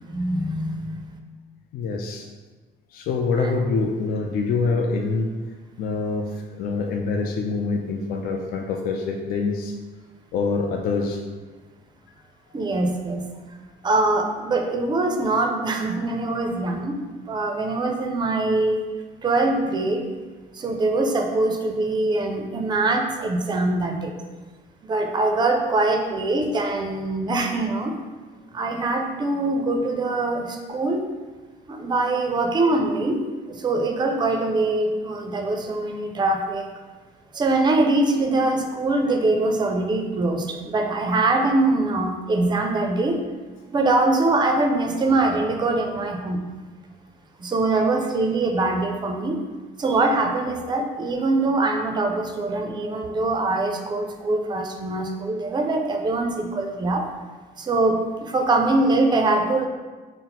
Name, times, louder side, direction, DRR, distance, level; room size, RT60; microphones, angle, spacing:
voice 1, 0.1-1.0 3.4-3.5 12.5-13.2 13.8-17.0 17.3-18.8 19.2-20.1 20.5-24.1 24.8-28.0 28.5-31.0 31.7-33.2 33.5-36.7 37.3-43.2 43.7-46.4 47.4-49.4 49.8-57.0 57.6-59.7, right 2 dB, 25° right, 4 dB, 0.4 m, -23 dB
voice 2, 1.7-2.3 2.9-5.3 5.8-6.3 6.6-9.7 10.3-11.2, left 4 dB, 55° left, 2 dB, 0.4 m, -25 dB
4.1 x 2.0 x 4.0 m, 1.3 s
cardioid pair, 125°, 18 cm